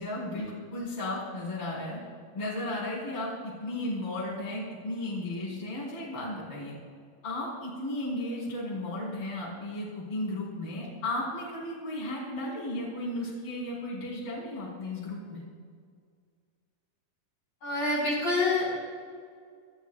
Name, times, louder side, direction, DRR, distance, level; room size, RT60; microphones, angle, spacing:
voice 1, 0.0-2.0 2.3-6.8 7.2-15.4, left 1 dB, 40° left, -6 dB, 5.0 m, -34 dB
voice 2, 17.6-18.8, left 2 dB, 55° left, -6 dB, 5.6 m, -27 dB
26.5 x 14.0 x 2.4 m, 2.1 s
omnidirectional pair, 4.1 m